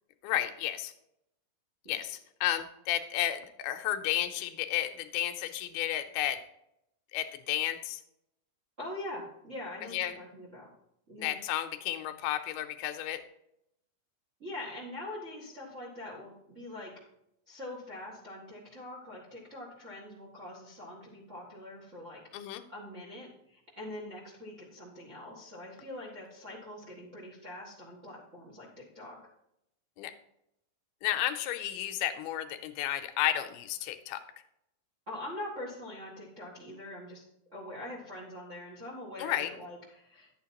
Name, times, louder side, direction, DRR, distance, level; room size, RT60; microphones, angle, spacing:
voice 1, 0.2-0.9 1.9-6.4 7.1-8.0 9.9-10.2 11.2-13.2 22.3-22.6 30.0-30.1 31.0-34.2 39.2-39.5, left 12 dB, 90° left, 8 dB, 2.7 m, -32 dB
voice 2, 1.8-2.2 8.8-10.7 11.1-11.4 14.4-16.9 17.5-22.2 22.7-29.2 35.1-37.2 37.5-40.3, left 1 dB, 35° right, -4 dB, 1.1 m, -43 dB
11.0 x 8.7 x 2.9 m, 0.79 s
omnidirectional pair, 4.4 m